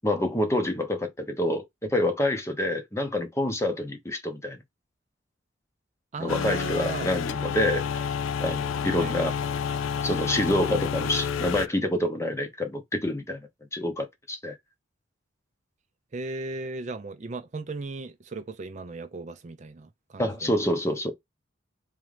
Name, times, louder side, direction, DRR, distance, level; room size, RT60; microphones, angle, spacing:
voice 1, 0.0-4.6 6.2-7.9 8.4-9.3 10.0-13.4 13.7-14.6 20.2-21.1, left 1 dB, 15° left, 0.7 m, -27 dB
voice 2, 6.1-7.1 9.0-9.2 16.1-20.6, right 3 dB, 35° right, 0.4 m, -36 dB
sound 1, 6.3-11.7, left 7 dB, 85° left, 0.3 m, -29 dB
3.7 x 3.1 x 3.2 m
head